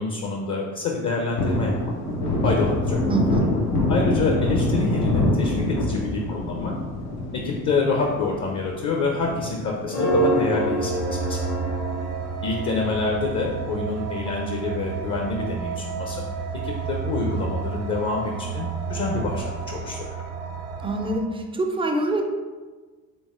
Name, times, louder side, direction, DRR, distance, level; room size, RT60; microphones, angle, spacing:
voice 1, 0.0-1.7 2.4-3.0 3.9-6.7 7.3-11.5 12.4-16.2 16.6-20.2, left 3 dB, 40° left, 0 dB, 0.6 m, -27 dB
Thunder, 1.0-11.7 12.1-12.2 12.5-14.0 14.3-14.5 14.8-15.6 16.0-16.1 16.5-16.6 18.9-19.5, left 1 dB, 80° left, 0.8 m, -26 dB
voice 2, 3.1-3.5 20.8-22.2, right 2 dB, 15° right, 3 dB, 0.3 m, -25 dB
sound 1, 9.9-13.2, right 1 dB, 65° left, 1.2 m, -26 dB
sound 2, 10.1-21.2, right 6 dB, 70° right, 0.6 m, -31 dB
3.9 x 3.5 x 2.4 m, 1.3 s
hypercardioid pair, 55°, 45 cm